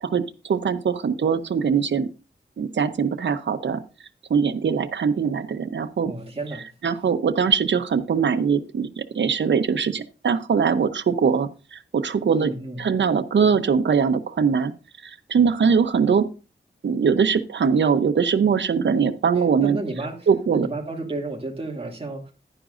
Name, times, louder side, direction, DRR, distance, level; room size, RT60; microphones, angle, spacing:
voice 1, 0.0-2.1 2.6-3.8 4.3-6.1 6.8-12.5 12.8-14.7 15.0-16.2 16.8-19.8 20.3-20.7, right 6 dB, 90° right, 10 dB, 0.8 m, -22 dB
voice 2, 6.0-6.6 12.3-12.9 19.4-22.3, right 2 dB, 30° right, 1 dB, 2.5 m, -32 dB
11.0 x 9.9 x 2.6 m, 0.34 s
wide cardioid pair, 105°, 18 cm